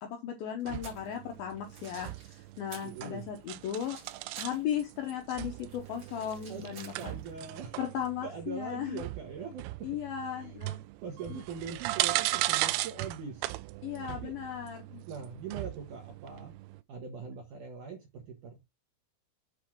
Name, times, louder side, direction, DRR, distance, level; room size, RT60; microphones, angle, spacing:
voice 1, 0.0-4.0 4.4-7.1 7.8-9.0 9.8-10.8 11.3-11.4 13.8-15.0, left 9 dB, 85° left, 4 dB, 2.1 m, -36 dB
sound 1, 0.6-1.1 1.6-3.0 3.2-5.0 5.3-7.5, right 5 dB, 40° right, 2.4 m, -51 dB
sound 2, 0.7-16.8, right 18 dB, 85° right, 2.9 m, -37 dB
voice 2, 2.8-3.3 6.5-6.7 7.0-7.8 8.2-9.6 10.4-10.6 11.0-13.5 14.2-14.3 15.1-16.5 16.9-18.6, right 6 dB, 65° right, 2 dB, 2.0 m, -42 dB
8.3 x 3.5 x 6.0 m, 0.22 s
omnidirectional pair, 5.6 m